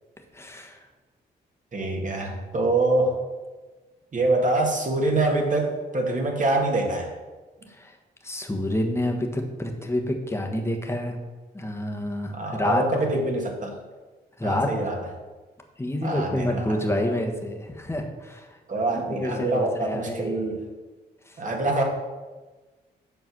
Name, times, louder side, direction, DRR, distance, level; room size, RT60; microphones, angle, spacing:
voice 1, 0.3-0.8 7.7-7.9 8.2-11.2 11.5-12.8 14.4-14.7 15.8-18.5 18.9-20.4 21.3-21.4, left 1 dB, 15° left, 3 dB, 1.3 m, -28 dB
voice 2, 1.7-3.2 4.1-7.1 12.3-13.7 14.4-15.0 16.0-16.8 18.7-20.6 21.4-21.8, right 2 dB, 45° right, 1 dB, 1.9 m, -25 dB
7.7 x 4.6 x 6.1 m, 1.3 s
cardioid pair, 75°, 18 cm